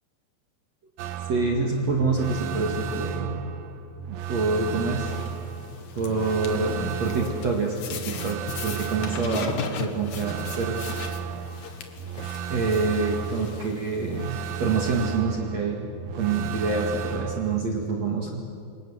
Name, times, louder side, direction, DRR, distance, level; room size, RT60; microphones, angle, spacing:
sound 1, 1.0-17.6, right 7 dB, 75° right, 3.0 m, -34 dB
voice 1, 1.3-3.5 4.1-5.1 6.0-11.0 12.5-15.9 16.1-18.3, right 3 dB, 45° right, 1 dB, 2.5 m, -26 dB
sound 2, 5.0-14.9, left 6 dB, 55° left, 2.3 m, -39 dB
28.0 x 26.0 x 7.5 m, 2.5 s
omnidirectional pair, 5.5 m